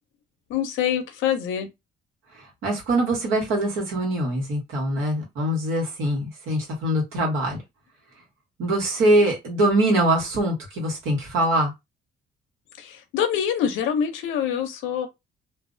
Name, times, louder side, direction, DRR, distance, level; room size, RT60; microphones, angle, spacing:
voice 1, 0.5-1.7 12.8-15.1, left 8 dB, 90° left, 0.6 m, -25 dB
voice 2, 2.6-7.6 8.6-11.7, right 1 dB, 85° right, 1.2 m, -23 dB
2.4 x 2.0 x 2.5 m
cardioid pair, 90°, 20 cm